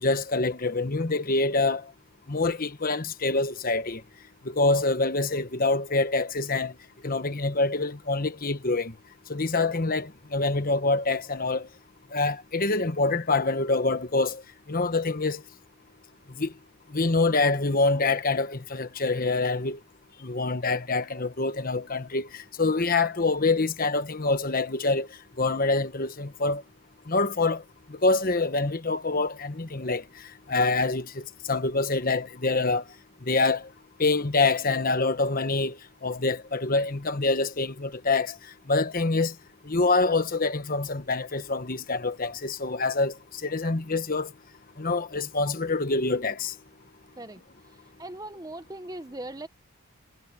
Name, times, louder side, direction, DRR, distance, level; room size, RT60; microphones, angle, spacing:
voice 1, 0.0-1.8 2.3-4.0 4.4-6.7 7.0-8.9 9.3-11.7 12.1-14.4 14.7-15.4 16.4-16.5 16.9-19.8 20.2-25.1 25.4-26.6 27.1-27.6 27.9-30.0 30.5-32.8 33.2-33.7 34.0-38.4 38.7-39.3 39.6-43.1 43.4-44.3 44.8-46.5, left 3 dB, 40° left, 1.2 m, -26 dB
voice 2, 48.0-49.5, right 1 dB, 15° right, 0.8 m, -39 dB
head